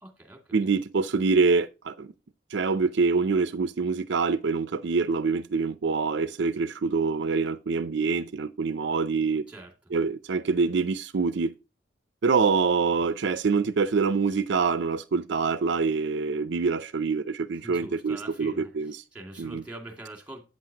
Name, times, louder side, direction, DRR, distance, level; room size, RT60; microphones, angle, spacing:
voice 1, 0.0-0.6 9.5-9.7 17.6-20.5, right 2 dB, 5° right, 2.3 m, -43 dB
voice 2, 0.5-2.1 2.5-9.4 9.9-11.5 12.2-18.9 19.4-19.6, right 4 dB, 70° right, 0.5 m, -25 dB
8.6 x 7.6 x 2.8 m
head